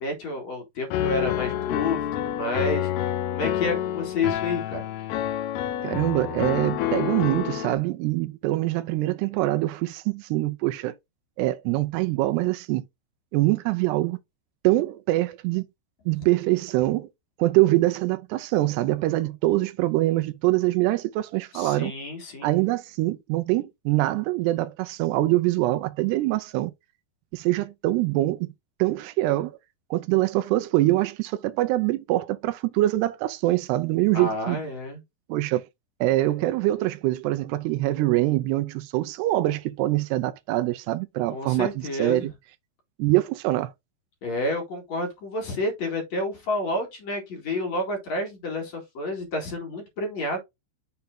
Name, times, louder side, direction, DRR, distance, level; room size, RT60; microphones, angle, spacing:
voice 1, 0.0-4.8 21.5-22.5 34.1-35.0 41.3-42.3 44.2-50.4, left 2 dB, 45° left, 2.8 m, -30 dB
Piano, 0.9-7.8, left 11 dB, 75° left, 2.5 m, -28 dB
voice 2, 5.8-10.9 11.4-12.8 13.3-14.2 14.6-15.6 16.1-17.1 17.4-21.9 22.4-26.7 27.3-28.5 28.8-29.6 29.9-34.6 35.3-35.6 36.0-42.3 43.0-43.7, right 17 dB, 85° right, 2.4 m, -24 dB
6.9 x 4.2 x 3.8 m
omnidirectional pair, 5.3 m